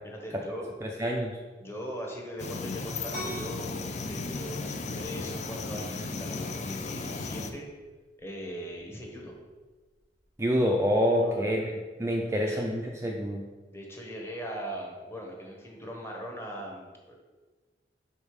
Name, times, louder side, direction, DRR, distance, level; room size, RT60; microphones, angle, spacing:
voice 1, 0.0-0.7 1.6-7.7 8.2-9.3 11.2-11.5 12.3-12.7 13.7-17.2, equal, 15° left, -1 dB, 1.1 m, -40 dB
voice 2, 0.8-1.4 10.4-11.6 12.0-13.4, equal, 15° right, 0 dB, 0.4 m, -27 dB
sound 1, 2.4-7.5, left 3 dB, 40° left, 0.5 m, -35 dB
sound 2, 3.1-10.5, equal, 60° left, 1.9 m, -46 dB
5.4 x 4.3 x 4.7 m, 1.3 s
head